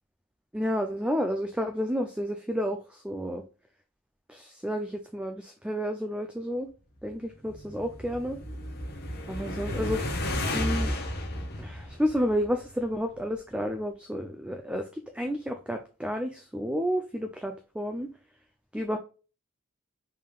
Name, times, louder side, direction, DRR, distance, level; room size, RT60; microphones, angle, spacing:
voice 1, 0.5-3.4 4.3-6.7 7.0-8.4 9.3-10.0 10.5-10.9 11.6-18.1 18.7-19.0, equal, 5° right, 5 dB, 0.4 m, -31 dB
sound 1, 7.3-12.8, left 1 dB, 50° left, 1.1 m, -33 dB
5.5 x 3.5 x 2.3 m, 0.34 s
head